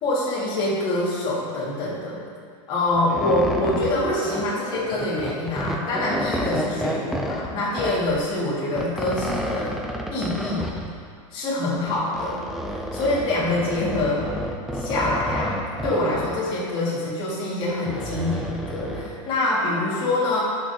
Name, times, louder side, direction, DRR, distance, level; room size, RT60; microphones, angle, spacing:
voice 1, 0.0-2.2 2.7-9.8 10.1-10.7 11.3-12.4 12.9-14.3 14.7-20.4, left 2 dB, 30° left, -7 dB, 2.0 m, -25 dB
sound 1, 2.9-8.2 8.7-11.0 11.8-16.4 17.7-19.2, equal, ahead, 0.3 m, -30 dB
11.0 x 6.2 x 2.8 m, 2.1 s
supercardioid pair, 160°, 17 cm